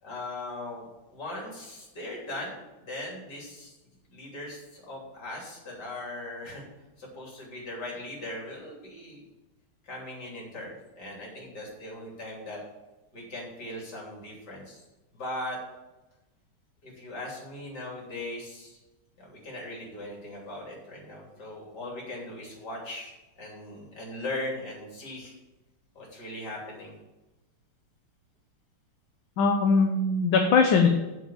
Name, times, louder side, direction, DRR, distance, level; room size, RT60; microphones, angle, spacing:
voice 1, 0.0-3.7 4.1-6.6 7.0-9.2 9.9-12.6 13.1-14.8 15.1-15.6 16.8-18.8 19.2-25.3 26.0-26.9, left 1 dB, 50° left, -2 dB, 3.7 m, -39 dB
voice 2, 29.4-30.9, left 4 dB, 65° left, 3 dB, 1.6 m, -21 dB
7.9 x 7.4 x 7.2 m, 1.0 s
omnidirectional pair, 2.4 m